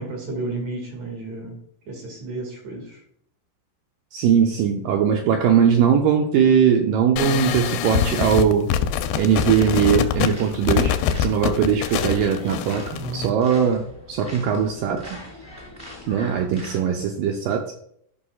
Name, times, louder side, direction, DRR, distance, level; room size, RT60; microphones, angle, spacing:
voice 1, 0.0-1.6 1.9-3.0 12.9-13.4, right 2 dB, 50° right, 1 dB, 2.8 m, -32 dB
voice 2, 4.1-8.7 9.2-12.8 13.1-15.2 16.1-17.7, right 7 dB, 85° right, 4 dB, 1.9 m, -20 dB
sound 1, 7.2-13.3, left 9 dB, 90° left, 2.6 m, -24 dB
sound 2, 9.5-16.8, left 1 dB, 5° right, 1.5 m, -42 dB
12.5 x 5.8 x 2.3 m, 0.68 s
omnidirectional pair, 4.6 m